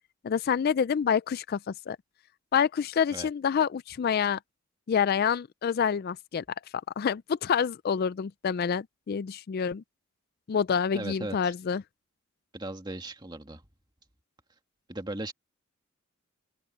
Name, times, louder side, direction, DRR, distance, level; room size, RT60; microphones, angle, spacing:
voice 1, 0.2-1.6 1.9-2.0 2.5-4.4 4.9-6.4 7.0-9.8 10.5-11.8, left 7 dB, 45° left, 0.3 m, -27 dB
voice 2, 10.9-11.5 12.5-13.6 14.9-15.3, right 2 dB, 20° right, 1.9 m, -37 dB
open air
head